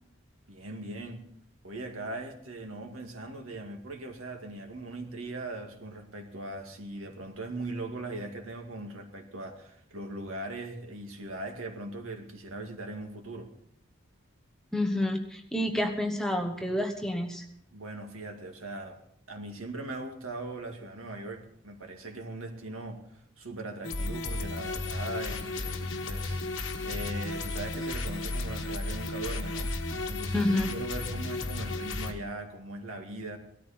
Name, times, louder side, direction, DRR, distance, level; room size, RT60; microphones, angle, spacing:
voice 1, 0.5-1.3 1.6-13.5 17.7-19.0 19.3-26.4 26.8-29.7 30.1-33.4, right 2 dB, 80° right, 4 dB, 2.2 m, -40 dB
voice 2, 14.7-17.5 30.3-30.7, left 1 dB, 5° left, 4 dB, 1.1 m, -29 dB
sound 1, 23.8-32.1, left 2 dB, 65° left, 1.5 m, -34 dB
18.0 x 13.5 x 4.3 m, 0.70 s
head